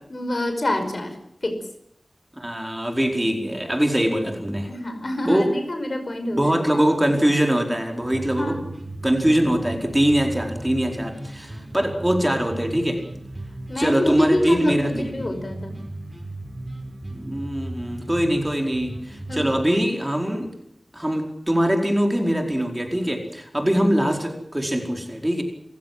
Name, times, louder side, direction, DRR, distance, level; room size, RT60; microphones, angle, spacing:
voice 1, 0.1-1.2 1.4-1.6 4.7-6.5 8.2-8.6 13.7-15.8 19.3-19.5, left 1 dB, 50° left, 7 dB, 5.2 m, -26 dB
voice 2, 2.4-4.7 5.2-5.5 6.3-8.5 9.0-13.0 13.7-15.2 17.1-20.5 20.9-25.4, equal, 10° right, 3 dB, 4.7 m, -22 dB
sound 1, 8.0-19.6, right 1 dB, 35° right, 6.6 m, -36 dB
29.5 x 16.0 x 7.6 m, 0.76 s
wide cardioid pair, 80°, 0 cm